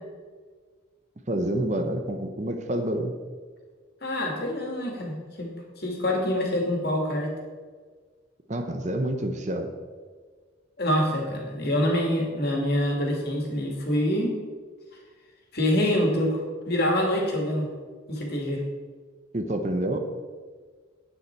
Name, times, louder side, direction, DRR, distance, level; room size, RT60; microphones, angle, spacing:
voice 1, 1.3-3.1 8.5-9.7 19.3-20.0, right 1 dB, 35° right, 6 dB, 0.8 m, -28 dB
voice 2, 4.0-7.3 10.8-14.3 15.5-17.7 18.1-18.6, left 1 dB, 50° left, 1 dB, 2.3 m, -26 dB
10.0 x 9.4 x 4.6 m, 1.5 s
head